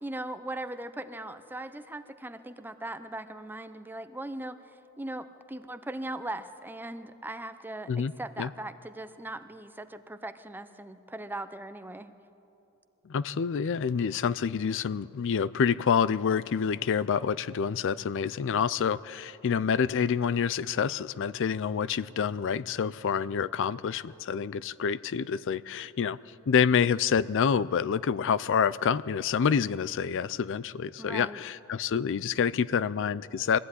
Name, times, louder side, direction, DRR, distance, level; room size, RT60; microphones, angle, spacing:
voice 1, 0.0-4.6 5.0-12.1 31.0-31.4, right 1 dB, 10° right, 10 dB, 0.7 m, -39 dB
voice 2, 13.1-26.2 26.5-33.6, left 7 dB, 60° left, 18 dB, 0.4 m, -27 dB
22.0 x 15.0 x 9.7 m, 2.9 s
head